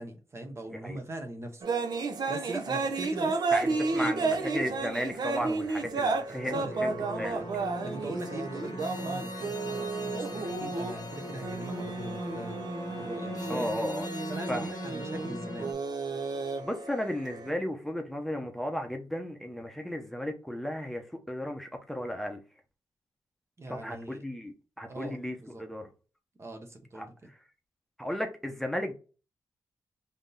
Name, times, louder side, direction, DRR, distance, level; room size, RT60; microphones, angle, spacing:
voice 1, 0.0-1.6 2.3-4.4 5.3-6.8 7.2-7.5 7.8-13.9 14.3-15.7 23.6-24.2 24.9-25.6 26.4-27.3, right 2 dB, 35° right, 0.9 m, -41 dB
sound 1, 1.6-17.5, right 3 dB, 65° right, 0.7 m, -32 dB
voice 2, 3.9-7.4 13.5-14.1 14.5-14.7 16.6-22.4 23.7-25.9 26.9-27.1 28.0-28.9, equal, 5° left, 0.7 m, -34 dB
sound 2, 6.6-15.7, left 1 dB, 60° left, 0.8 m, -40 dB
3.5 x 2.7 x 3.8 m
cardioid pair, 80°, 8 cm